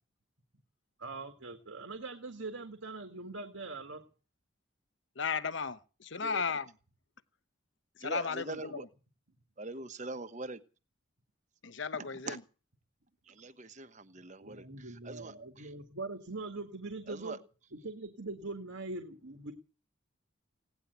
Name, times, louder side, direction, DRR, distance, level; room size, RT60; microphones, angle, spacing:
voice 1, 1.0-4.0 14.4-17.4 17.7-19.5, right 3 dB, 75° right, 1.9 m, -42 dB
voice 2, 5.2-6.7 8.0-8.9 11.6-12.4, left 5 dB, 65° left, 0.9 m, -35 dB
voice 3, 8.0-8.9 9.6-10.6 12.3-12.4 13.3-15.7 17.1-17.4, right 2 dB, 35° right, 1.1 m, -43 dB
17.5 x 10.0 x 8.1 m
head